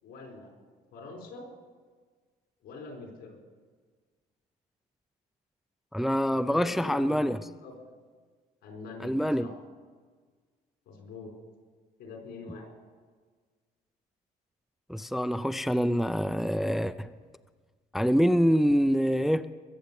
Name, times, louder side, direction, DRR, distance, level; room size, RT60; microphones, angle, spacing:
voice 1, 0.0-0.5 0.9-1.4 2.6-3.3 6.3-7.7 8.6-9.5 10.9-11.3 12.0-12.7, left 3 dB, 75° left, 1 dB, 4.5 m, -44 dB
voice 2, 5.9-7.4 9.0-9.5 14.9-17.1 17.9-19.5, equal, ahead, 12 dB, 0.4 m, -25 dB
21.5 x 7.9 x 7.0 m, 1.5 s
cardioid pair, 110°, 17 cm